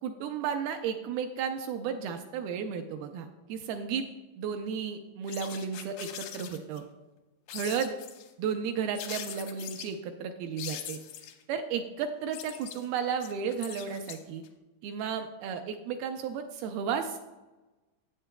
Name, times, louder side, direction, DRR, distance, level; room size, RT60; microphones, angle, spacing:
voice 1, 0.0-4.1 4.4-6.8 7.5-8.0 8.4-11.0 11.5-14.4 14.8-17.2, right 7 dB, 85° right, 6 dB, 2.2 m, -33 dB
sound 1, 5.3-6.8 7.5-8.3 9.0-9.9 10.6-11.4 12.1-14.5, left 10 dB, 80° left, 2.1 m, -42 dB
14.5 x 8.4 x 2.2 m, 1.1 s
omnidirectional pair, 4.8 m